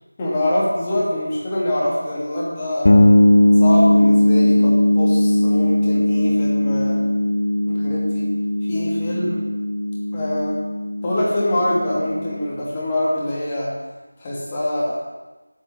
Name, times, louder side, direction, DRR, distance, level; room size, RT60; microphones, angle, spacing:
voice 1, 0.2-2.9 3.6-7.0 7.7-8.3 8.7-9.4 10.1-10.6 11.0-13.7 14.2-15.0, left 1 dB, 15° left, -6 dB, 2.5 m, -24 dB
sound 1, 2.8-12.4, left 1 dB, 40° left, 1.1 m, -18 dB
8.8 x 7.6 x 8.1 m, 1.2 s
figure-of-eight pair, 175°, 0 cm